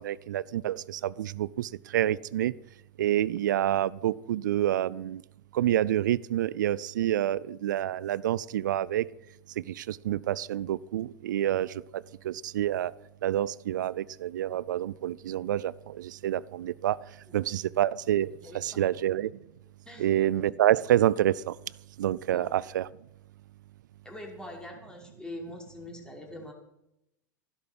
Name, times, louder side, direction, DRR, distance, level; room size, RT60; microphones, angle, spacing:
voice 1, 0.0-2.5 3.0-5.2 5.5-9.1 9.6-12.9 13.2-17.0 17.3-19.3 20.0-21.6 22.0-22.9, right 12 dB, 75° right, 22 dB, 0.5 m, -28 dB
voice 2, 18.4-18.9 19.9-20.1 22.3-22.4 24.0-26.5, left 1 dB, 10° left, 0 dB, 5.6 m, -43 dB
16.0 x 11.5 x 6.1 m, 0.82 s
hypercardioid pair, 95°, 10 cm